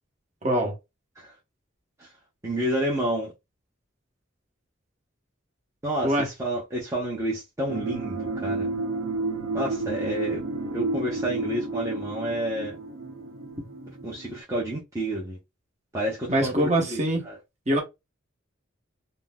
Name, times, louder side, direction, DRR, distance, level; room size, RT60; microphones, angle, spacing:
voice 1, 0.4-0.8 6.0-6.3 16.3-17.2 17.7-17.8, right 1 dB, 35° right, 1.0 m, -23 dB
voice 2, 2.4-3.3 5.8-8.7 9.5-10.4 10.7-12.8 14.0-15.4 15.9-16.5 16.9-17.4, right 1 dB, 15° right, 0.7 m, -30 dB
sound 1, 7.7-14.4, right 3 dB, 90° right, 0.6 m, -31 dB
3.8 x 2.0 x 2.2 m
head